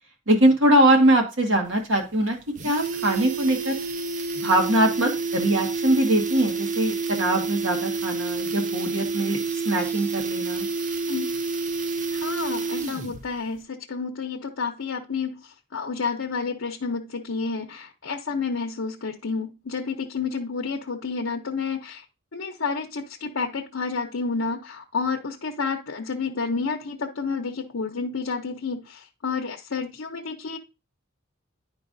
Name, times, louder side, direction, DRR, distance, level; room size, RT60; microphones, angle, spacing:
voice 1, 0.3-2.4 2.6-3.7 4.4-9.4 9.6-10.7, right 1 dB, 75° right, 3 dB, 1.6 m, -22 dB
sound 1, 1.7-1.8 2.1-2.2 2.4-13.3 13.5-13.6, right 4 dB, 40° right, 0.5 m, -29 dB
voice 2, 12.1-22.0 22.3-30.6, left 4 dB, 80° left, 1 dB, 0.7 m, -30 dB
10.5 x 4.6 x 2.6 m, 0.28 s
head